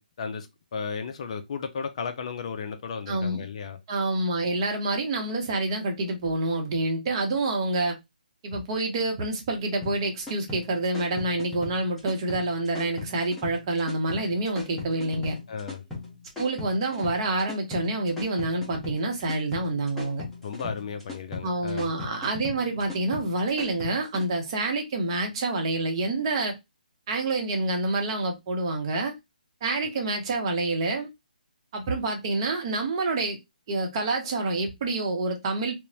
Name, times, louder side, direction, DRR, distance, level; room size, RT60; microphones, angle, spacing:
voice 1, 0.0-3.8 15.5-15.8 20.4-21.9, left 6 dB, 45° left, 0.4 m, -34 dB
voice 2, 3.1-3.4 3.9-8.0 8.4-15.4 16.4-20.2 21.4-26.5 27.1-29.1 29.6-31.1 31.7-33.4 33.7-35.8, right 2 dB, 35° right, 0.7 m, -27 dB
sound 1, 9.8-24.2, left 3 dB, 5° left, 0.7 m, -37 dB
2.9 x 2.0 x 2.6 m
hypercardioid pair, 150°, 5 cm